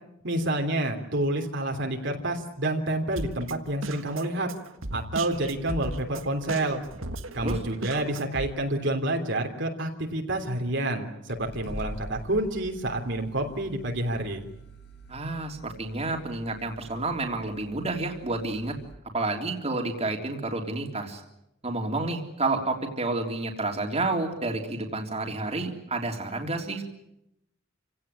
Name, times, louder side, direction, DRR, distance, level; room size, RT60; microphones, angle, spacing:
voice 1, 0.2-4.5 4.9-6.8 7.3-14.4, right 1 dB, 65° right, 3 dB, 3.3 m, -28 dB
Drum kit, 3.2-8.5, right 2 dB, 85° right, 1.6 m, -37 dB
sound 1, 4.8-4.9 5.2-8.0 8.5-8.9 9.8-9.9 10.7-10.8 11.3-18.9, right 1 dB, 60° left, 5.0 m, -46 dB
voice 2, 15.1-18.8 19.1-21.2 21.6-26.8, right 2 dB, 30° right, 2 dB, 3.4 m, -30 dB
28.5 x 17.5 x 9.9 m, 0.84 s
head